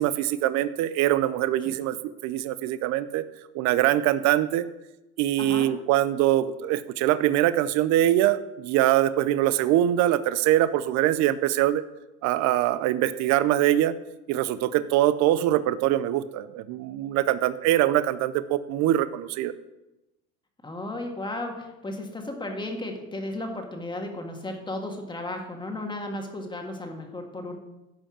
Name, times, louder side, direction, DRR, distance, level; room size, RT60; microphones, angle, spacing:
voice 1, 0.0-3.2 3.5-4.7 5.2-11.8 12.2-13.9 14.3-19.5, right 13 dB, 45° right, 14 dB, 0.6 m, -23 dB
voice 2, 5.4-5.7 20.6-27.6, left 1 dB, 10° left, 3 dB, 1.7 m, -34 dB
11.5 x 5.3 x 7.3 m, 0.98 s
supercardioid pair, 120°, 38 cm